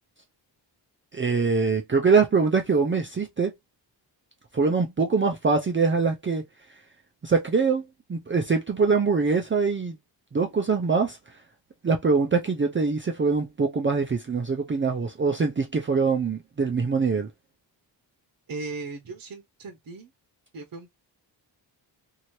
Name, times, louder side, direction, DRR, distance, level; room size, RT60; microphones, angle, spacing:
voice 1, 1.1-3.5 4.5-6.4 7.2-7.8 8.1-9.9 10.3-11.2 11.8-17.3, right 4 dB, 25° right, 0.5 m, -23 dB
voice 2, 18.5-20.1 20.5-20.9, right 3 dB, 50° right, 0.9 m, -37 dB
2.8 x 2.8 x 3.1 m
wide cardioid pair, 110°, 45 cm